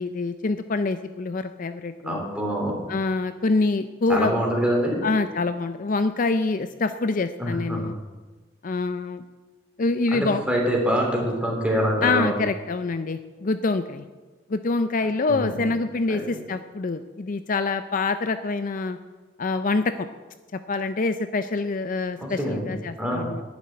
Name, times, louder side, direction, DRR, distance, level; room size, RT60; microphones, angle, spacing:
voice 1, 0.0-2.2 2.9-4.3 5.0-7.9 8.6-9.2 9.8-10.4 12.0-14.1 14.5-19.0 19.4-20.1 20.7-23.4, left 3 dB, 45° left, 9 dB, 0.5 m, -25 dB
voice 2, 2.0-2.8 4.1-5.0 7.4-7.8 10.1-12.4 15.3-15.6 16.1-16.3 22.2-22.7 23.0-23.3, equal, 5° right, -1 dB, 3.2 m, -25 dB
11.0 x 7.3 x 9.5 m, 1.3 s
head